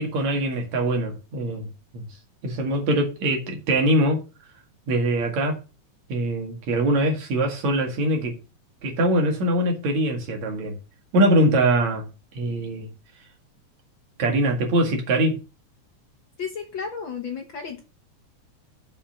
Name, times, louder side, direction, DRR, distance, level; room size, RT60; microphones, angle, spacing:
voice 1, 0.0-1.7 1.9-2.1 2.4-4.2 4.9-5.6 6.1-8.3 8.8-10.8 11.1-12.0 12.3-12.9 14.2-15.4, right 1 dB, 65° right, 3.3 m, -22 dB
voice 2, 16.4-17.8, left 6 dB, 50° left, 1.6 m, -33 dB
6.9 x 5.4 x 7.1 m
omnidirectional pair, 3.4 m